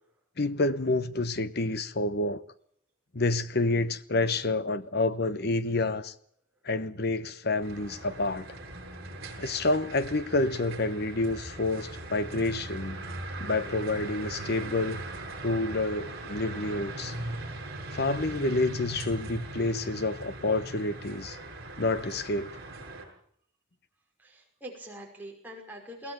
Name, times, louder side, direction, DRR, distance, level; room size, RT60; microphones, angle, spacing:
voice 1, 0.4-2.4 3.1-6.1 6.6-8.4 9.4-13.0 13.4-15.0 15.4-17.1 17.9-21.4 21.8-22.6, left 2 dB, 50° left, 1.0 m, -28 dB
sound 1, 7.6-23.0, right 2 dB, 50° right, 7.1 m, -40 dB
voice 2, 24.2-26.1, right 1 dB, 10° right, 5.6 m, -43 dB
21.5 x 16.0 x 9.0 m
head